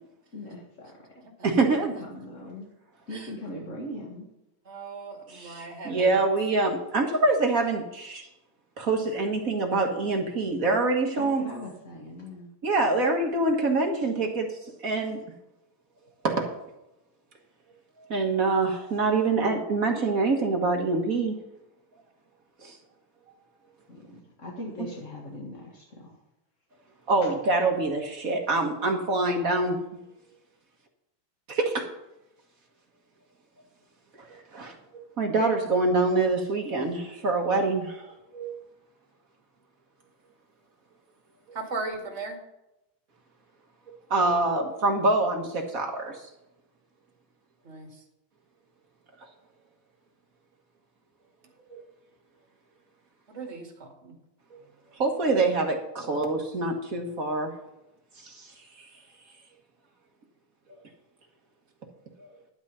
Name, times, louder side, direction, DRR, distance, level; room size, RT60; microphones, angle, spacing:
voice 1, 0.3-0.9 1.5-2.7 3.1-4.3 11.2-12.5 23.9-26.2 27.2-27.3, left 1 dB, 30° left, -2 dB, 1.4 m, -39 dB
voice 2, 1.4-1.9 5.3-8.2 8.8-11.5 12.6-14.5 14.8-15.2 16.2-16.5 18.1-21.4 22.6-22.7 27.1-30.0 31.5-31.9 34.2-34.3 34.5-38.1 38.3-38.6 44.1-46.2 51.7-51.8 54.5-54.6 55.0-57.5 58.2-58.5 60.7-60.8 62.2-62.3, right 3 dB, 45° right, 2 dB, 1.1 m, -25 dB
voice 3, 4.7-6.2 41.5-42.4 47.6-47.9 53.3-54.1, right 3 dB, 25° right, 2 dB, 1.9 m, -37 dB
11.5 x 9.3 x 5.5 m, 0.92 s
omnidirectional pair, 3.7 m